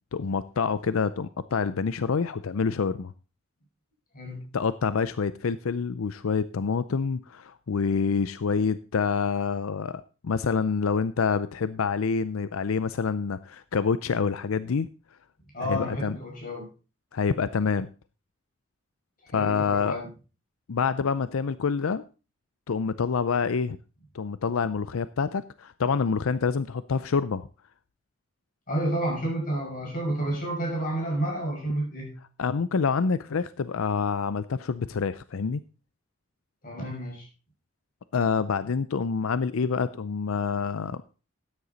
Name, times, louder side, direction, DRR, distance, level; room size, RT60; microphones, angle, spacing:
voice 1, 0.1-3.1 4.5-14.9 15.7-16.2 17.1-17.9 19.3-20.0 20.7-22.0 22.7-23.8 24.1-27.5 32.4-35.6 38.1-41.0, left 5 dB, 90° left, 15 dB, 0.5 m, -27 dB
voice 2, 4.1-4.5 15.5-16.7 19.2-20.1 28.7-32.2 36.6-37.3, right 1 dB, 40° left, -1 dB, 6.0 m, -30 dB
13.0 x 9.8 x 4.0 m, 0.33 s
head